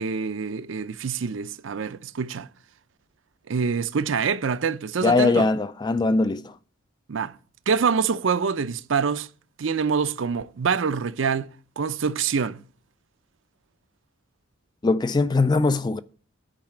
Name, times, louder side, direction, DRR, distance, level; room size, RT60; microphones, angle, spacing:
voice 1, 0.0-2.5 3.5-5.5 7.1-7.3 7.7-9.3 9.6-11.5 11.8-12.6, right 5 dB, 65° right, 0.5 m, -25 dB
voice 2, 5.0-6.5 14.8-16.0, left 3 dB, 20° left, 0.3 m, -21 dB
8.9 x 4.7 x 7.6 m
head